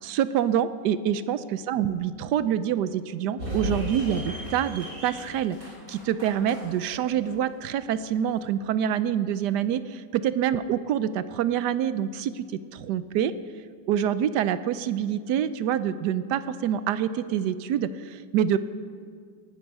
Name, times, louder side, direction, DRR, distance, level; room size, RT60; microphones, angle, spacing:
voice 1, 0.0-5.6 5.9-12.4 12.7-13.3 13.9-18.6, right 9 dB, 70° right, 14 dB, 1.1 m, -26 dB
sound 1, 3.4-8.4, equal, 45° right, 4.3 m, -37 dB
18.5 x 11.5 x 5.4 m, 2.1 s
omnidirectional pair, 2.0 m